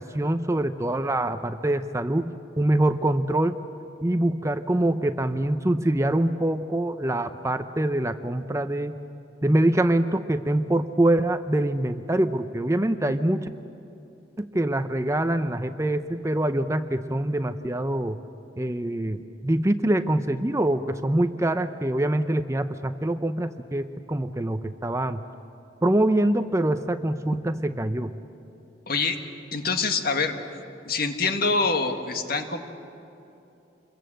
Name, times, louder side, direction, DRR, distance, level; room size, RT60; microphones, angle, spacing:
voice 1, 0.0-3.6 4.0-9.0 9.4-13.5 14.4-18.2 18.6-25.2 25.8-28.1, right 1 dB, 15° right, 10 dB, 0.6 m, -24 dB
voice 2, 28.9-29.2 29.5-30.3 30.9-32.6, left 4 dB, 50° left, 6 dB, 1.8 m, -25 dB
27.5 x 22.0 x 7.8 m, 2.8 s
head